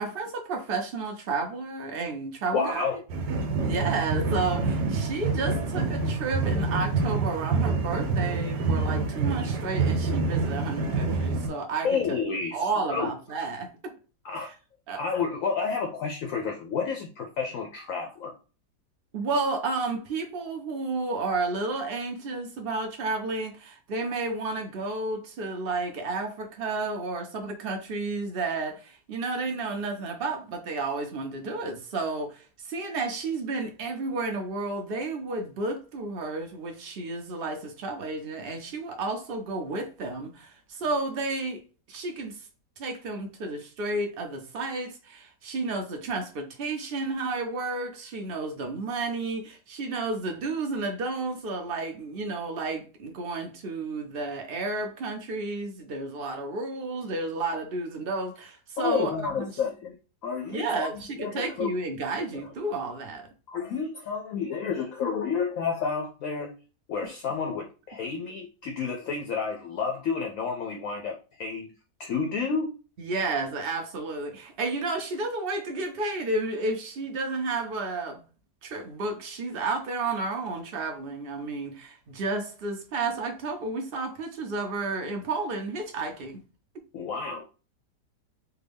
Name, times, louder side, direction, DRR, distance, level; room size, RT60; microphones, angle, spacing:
voice 1, 0.0-2.8 3.6-12.0 12.5-13.7 14.9-15.0 19.1-41.6 41.9-42.3 42.8-59.1 59.4-59.5 60.5-63.3 73.0-78.2 78.6-86.4, right 3 dB, 70° right, 0.5 m, -31 dB
voice 2, 2.5-3.0 11.8-13.1 14.2-14.5 15.0-18.3 58.8-60.0 60.2-60.9 61.2-61.7 63.5-66.5 66.9-71.7 72.0-72.7 86.9-87.4, left 5 dB, 70° left, 0.8 m, -30 dB
sound 1, 3.1-11.5, right 4 dB, 85° right, 1.4 m, -27 dB
3.5 x 2.2 x 3.4 m
omnidirectional pair, 1.8 m